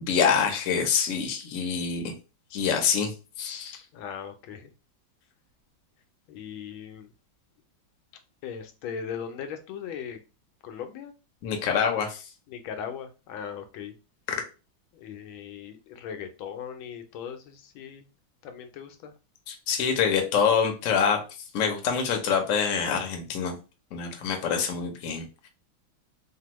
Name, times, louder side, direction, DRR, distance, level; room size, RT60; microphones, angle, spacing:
voice 1, 0.0-2.1 2.5-3.8 11.4-12.2 19.5-21.2 21.5-23.6 23.9-25.5, left 6 dB, 60° left, 0.8 m, -26 dB
voice 2, 3.9-4.7 6.3-7.1 8.4-10.2 10.6-11.1 12.5-13.9 14.9-18.0 18.4-19.1, left 7 dB, 85° left, 1.4 m, -38 dB
3.4 x 2.0 x 2.9 m
omnidirectional pair, 2.1 m